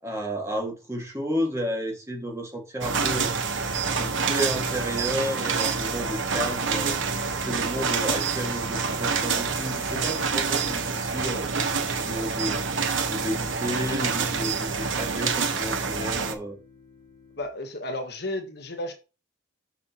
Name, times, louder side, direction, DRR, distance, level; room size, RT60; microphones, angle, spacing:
voice 1, 0.0-3.3 4.0-7.0 7.4-11.5 12.0-12.6 13.0-16.6, equal, 15° right, 2.0 m, -32 dB
sound 1, 2.8-16.3, right 5 dB, 80° right, 1.1 m, -27 dB
sound 2, 5.9-17.4, left 3 dB, 30° left, 2.6 m, -53 dB
voice 2, 17.4-18.9, left 1 dB, 55° left, 1.2 m, -33 dB
7.5 x 6.2 x 3.0 m
head